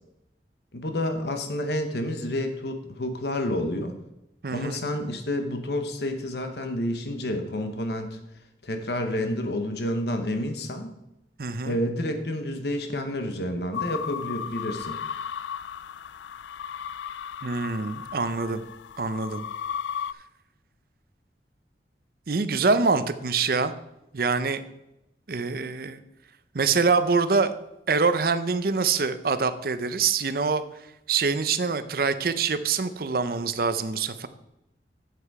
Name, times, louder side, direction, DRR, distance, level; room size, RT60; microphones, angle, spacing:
voice 1, 0.7-4.0 4.5-8.2 8.6-10.9 11.6-15.0, left 1 dB, 70° left, 6 dB, 1.0 m, -29 dB
voice 2, 4.4-4.8 11.4-11.8 17.4-18.6 19.0-19.4 22.3-23.7 24.1-24.6 25.3-26.0 26.5-27.5 27.9-30.6 31.1-34.3, right 4 dB, 55° right, 12 dB, 0.6 m, -25 dB
sound 1, 13.7-20.1, left 8 dB, 90° left, 0.3 m, -35 dB
8.2 x 7.7 x 4.7 m, 0.87 s
head